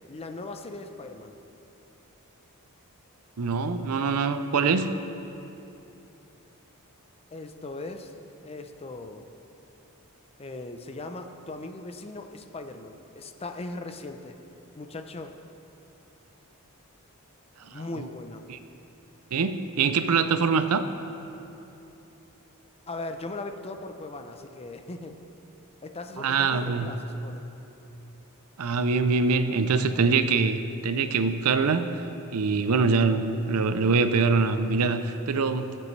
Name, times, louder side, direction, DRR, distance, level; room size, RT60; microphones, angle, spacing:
voice 1, 0.1-1.4 7.3-8.1 8.4-9.3 10.4-14.4 14.8-15.3 17.7-18.4 22.9-25.2 25.8-27.4, left 2 dB, 25° left, 6 dB, 0.6 m, -39 dB
voice 2, 3.4-4.9 17.6-17.7 18.0-18.1 18.5-18.6 19.3-20.9 26.2-26.9 28.6-30.6 30.8-31.8 32.3-35.8, right 4 dB, 75° right, 10 dB, 0.5 m, -24 dB
20.0 x 7.6 x 3.2 m, 3.0 s
head